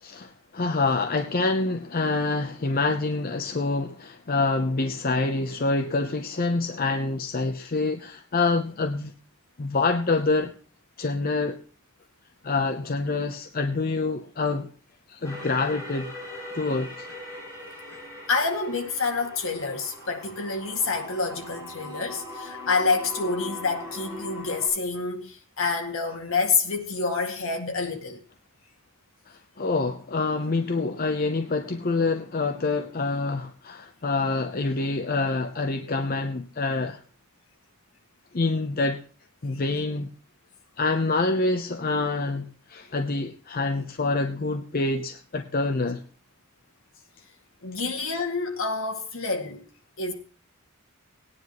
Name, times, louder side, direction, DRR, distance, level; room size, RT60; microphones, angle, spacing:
voice 1, 0.0-9.1 9.6-10.5 11.0-11.6 12.4-14.7 15.1-16.1 16.5-17.1 29.3-37.0 38.3-39.0 39.4-40.1 40.8-46.0, left 3 dB, 40° left, 0.7 m, -26 dB
sound 1, 15.2-24.7, left 1 dB, 15° left, 7.4 m, -40 dB
voice 2, 18.3-28.2 47.6-49.6 50.0-50.1, left 4 dB, 65° left, 2.2 m, -27 dB
19.0 x 9.9 x 3.0 m
head